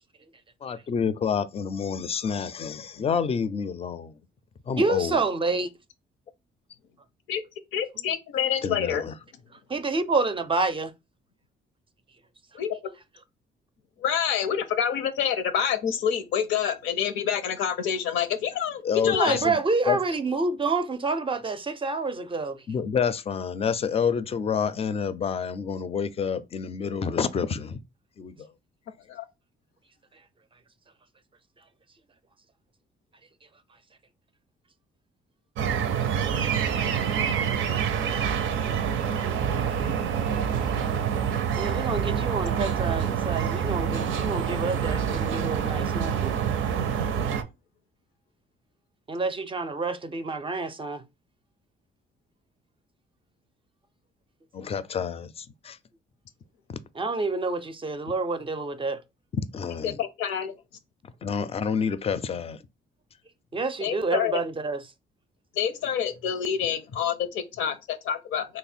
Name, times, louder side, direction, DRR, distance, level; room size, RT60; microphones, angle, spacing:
voice 1, 0.6-4.1 4.7-5.2 8.6-9.1 18.8-19.6 19.9-20.0 22.7-27.8 28.2-28.5 54.5-55.8 56.7-56.8 59.5-60.0 61.2-62.6, left 6 dB, 30° left, 0.4 m, -28 dB
voice 2, 4.8-5.7 9.7-10.9 19.1-22.6 40.5-40.8 41.6-46.3 49.1-51.0 57.0-59.0 63.5-64.8, right 3 dB, 25° right, 0.4 m, -28 dB
voice 3, 7.7-9.0 12.5-12.8 14.0-19.4 29.1-29.2 59.8-60.5 63.8-64.4 65.5-68.5, left 8 dB, 90° left, 0.6 m, -27 dB
sound 1, 35.6-47.4, right 7 dB, 80° right, 0.5 m, -26 dB
3.1 x 2.1 x 4.1 m
cardioid pair, 90°, 20 cm